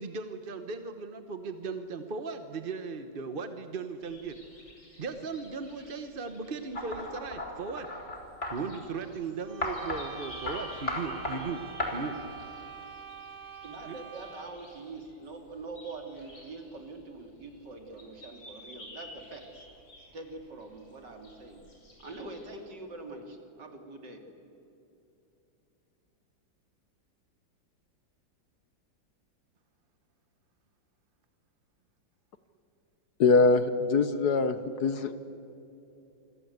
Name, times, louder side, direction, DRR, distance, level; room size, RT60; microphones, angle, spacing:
voice 1, 0.0-4.3 5.0-7.9 8.5-11.6 11.9-12.2 13.9-14.0, right 4 dB, 35° right, 8 dB, 0.9 m, -37 dB
sound 1, 4.0-22.6, left 2 dB, 75° left, 6.4 m, -53 dB
sound 2, 6.7-8.6 9.6-10.0 10.5-10.6 10.9-11.4 11.8-11.9, left 2 dB, 35° left, 4.3 m, -34 dB
sound 3, 9.4-14.7, right 6 dB, 80° right, 2.9 m, -46 dB
voice 2, 13.6-19.7 20.1-21.6 22.0-24.2, right 3 dB, 60° right, 4 dB, 3.4 m, -44 dB
voice 3, 33.2-35.2, left 4 dB, 60° left, 11 dB, 1.4 m, -23 dB
28.0 x 24.5 x 8.0 m, 2.7 s
omnidirectional pair, 2.1 m